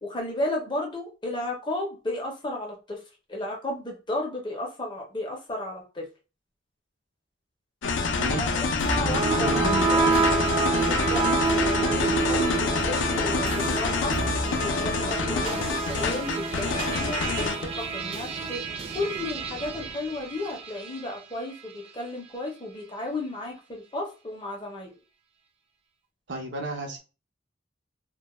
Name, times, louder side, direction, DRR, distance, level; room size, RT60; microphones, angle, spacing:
voice 1, 0.0-3.0 3.3-6.1 8.4-9.6 9.9-10.1 10.8-14.1 14.6-17.5 17.9-18.6 18.9-24.9, left 1 dB, 25° left, 0 dB, 0.5 m, -33 dB
sound 1, 7.8-17.7, left 4 dB, 75° left, 0.4 m, -27 dB
voice 2, 8.2-8.5 9.3-9.9 26.3-27.0, right 2 dB, 65° right, 2 dB, 0.6 m, -31 dB
sound 2, 8.8-21.1, right 4 dB, 30° right, 0.3 m, -28 dB
2.2 x 2.1 x 2.9 m, 0.32 s
head